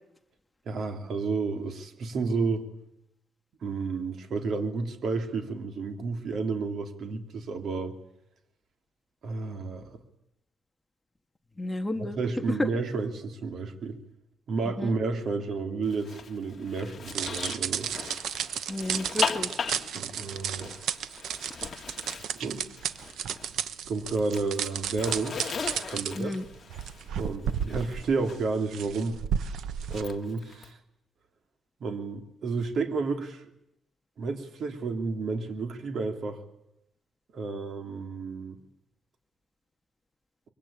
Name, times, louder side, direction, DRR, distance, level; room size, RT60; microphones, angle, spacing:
voice 1, 0.7-2.6 3.6-7.9 9.2-9.9 12.0-14.0 14.5-17.9 19.9-20.7 22.4-22.6 23.9-25.4 25.9-26.3 27.2-29.2 29.9-30.8 31.8-33.4 34.2-36.4 37.3-38.6, right 4 dB, 60° right, 6 dB, 3.1 m, -31 dB
voice 2, 11.6-12.2 12.6-12.7 14.8-14.9 18.7-19.6 26.2-26.4, left 2 dB, 15° left, 6 dB, 1.5 m, -31 dB
Zipper (clothing), 15.9-23.7 24.0-28.4 29.8-30.7, left 6 dB, 35° left, 1.9 m, -38 dB
sound 1, 17.1-30.0, right 8 dB, 85° right, 1.2 m, -33 dB
24.5 x 23.0 x 8.8 m, 0.83 s
cardioid pair, 140°, 0 cm